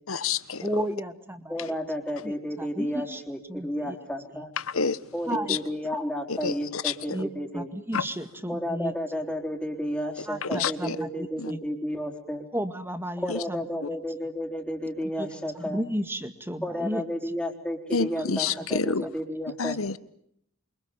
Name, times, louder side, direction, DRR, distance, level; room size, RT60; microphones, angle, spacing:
voice 1, 0.1-0.6 4.6-5.0 5.5-5.6 6.3-7.2 7.9-8.1 10.4-11.0 11.4-11.5 13.3-13.4 13.8-13.9 17.9-19.0 19.6-20.0, left 5 dB, 80° left, 1.3 m, -28 dB
voice 2, 0.6-1.8 2.2-3.2 3.5-4.0 4.3-4.4 5.3-5.6 7.1-7.3 7.5-8.9 10.3-11.6 12.5-13.6 15.2-15.3 15.6-17.3 18.4-18.6 19.0-19.1, equal, 10° right, 2.0 m, -33 dB
voice 3, 1.5-4.5 5.1-7.7 8.5-12.5 13.2-15.8 16.6-19.8, equal, 5° left, 4.1 m, -32 dB
28.0 x 25.5 x 7.2 m
head